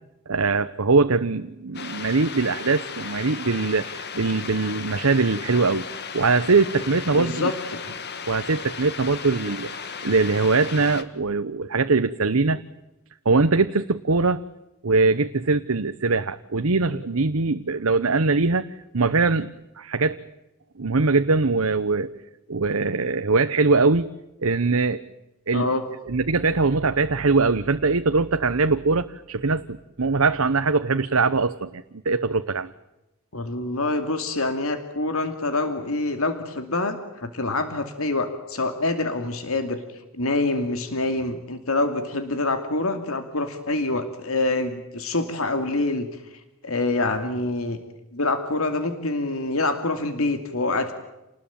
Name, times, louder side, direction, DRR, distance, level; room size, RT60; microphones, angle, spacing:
voice 1, 0.3-5.8 6.1-7.5 8.3-12.6 13.2-14.4 14.8-18.6 18.9-20.2 20.8-22.1 22.5-24.1 24.4-25.0 25.5-25.7 26.1-32.7, right 3 dB, 80° right, 9 dB, 1.0 m, -22 dB
sound 1, 1.7-11.0, left 6 dB, 55° left, 2.1 m, -35 dB
voice 2, 7.1-7.8 25.5-25.8 33.3-47.8 48.1-50.9, left 2 dB, 75° left, 8 dB, 2.5 m, -26 dB
29.0 x 20.0 x 8.8 m, 0.97 s
head